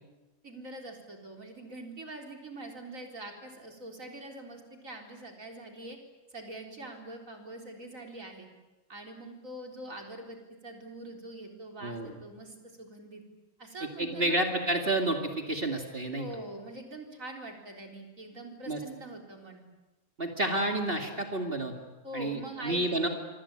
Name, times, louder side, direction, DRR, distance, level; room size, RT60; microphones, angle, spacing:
voice 1, 0.4-6.0 6.3-8.5 8.9-10.4 10.6-13.2 13.6-14.4 16.2-19.6 22.0-23.1, right 1 dB, 60° right, 2 dB, 4.4 m, -44 dB
voice 2, 11.8-12.1 14.0-16.3 18.7-18.8 20.2-21.7 22.1-23.1, right 1 dB, 40° right, 3 dB, 2.6 m, -30 dB
26.0 x 24.5 x 8.8 m, 1.1 s
omnidirectional pair, 1.5 m